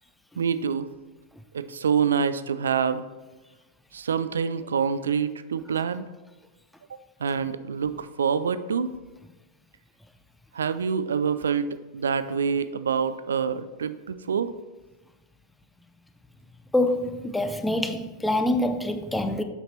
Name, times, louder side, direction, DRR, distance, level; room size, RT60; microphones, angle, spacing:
voice 1, 0.4-0.9 1.5-3.1 3.9-6.1 6.9-8.9 10.5-14.5, right 6 dB, 70° right, 0.4 m, -26 dB
voice 2, 16.7-19.4, left 1 dB, 5° left, 0.6 m, -25 dB
8.1 x 5.8 x 4.3 m
figure-of-eight pair, 90°, 0 cm